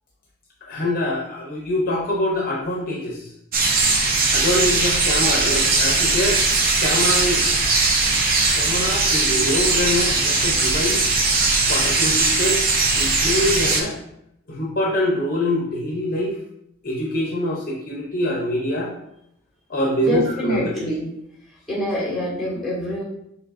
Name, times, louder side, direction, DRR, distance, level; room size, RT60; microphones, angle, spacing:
voice 1, 0.6-3.3 4.3-6.4 6.8-7.5 8.5-11.0 11.7-12.7 13.0-14.0 14.5-16.4 16.8-18.9 19.7-20.7, left 1 dB, 45° left, -2 dB, 0.7 m, -24 dB
sound 1, 3.5-13.8, right 3 dB, 45° right, 0.7 m, -19 dB
voice 2, 19.9-21.1 21.7-23.0, equal, ahead, -6 dB, 1.5 m, -25 dB
5.9 x 3.3 x 2.6 m, 0.77 s
head